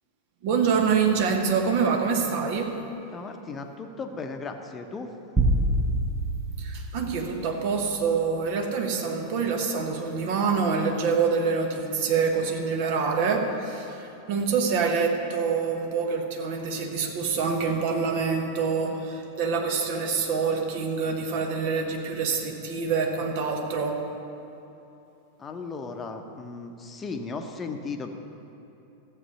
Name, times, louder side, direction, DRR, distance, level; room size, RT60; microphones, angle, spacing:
voice 1, 0.4-2.8 6.6-24.1, right 5 dB, 50° right, 3 dB, 1.3 m, -26 dB
voice 2, 3.1-5.1 25.4-28.1, left 4 dB, 20° left, 5 dB, 1.0 m, -36 dB
sound 1, 5.4-7.8, right 1 dB, 10° right, 1.2 m, -26 dB
14.0 x 7.8 x 5.5 m, 2.9 s
figure-of-eight pair, 90°, 0 cm